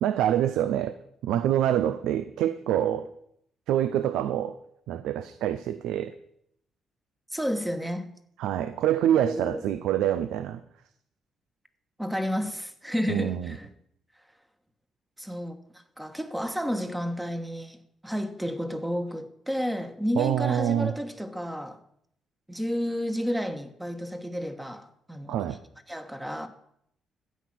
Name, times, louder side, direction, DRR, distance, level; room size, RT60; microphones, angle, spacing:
voice 1, 0.0-0.9 1.2-3.1 3.7-4.6 4.9-6.1 8.4-10.6 13.1-13.6 20.2-20.9 25.3-25.6, right 11 dB, 90° right, 0.5 m, -26 dB
voice 2, 7.3-8.1 9.2-9.6 12.0-13.7 15.2-21.8 22.5-25.4 25.9-26.5, equal, 5° right, 1.4 m, -31 dB
13.0 x 8.4 x 6.1 m
cardioid pair, 90°, 0 cm